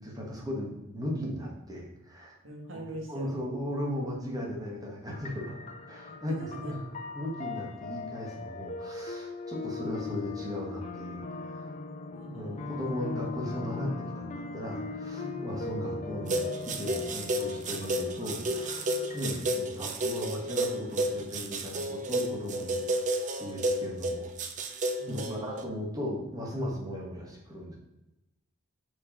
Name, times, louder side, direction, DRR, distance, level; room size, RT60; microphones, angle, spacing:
voice 1, 0.0-2.4 2.7-2.8 3.1-5.6 5.9-6.8 7.1-11.7 12.3-16.4 16.8-22.8 23.4-24.3 25.1-27.8, equal, 20° right, -1 dB, 1.7 m, -37 dB
voice 2, 2.4-3.3 6.3-6.7 12.1-13.1 15.1-15.6 25.0-25.6, right 1 dB, 70° right, 1 dB, 1.7 m, -43 dB
sound 1, 5.1-19.4, left 3 dB, 35° left, 0.6 m, -39 dB
sound 2, 16.3-25.6, right 1 dB, 35° right, 0.6 m, -31 dB
6.0 x 4.8 x 5.1 m, 0.96 s
head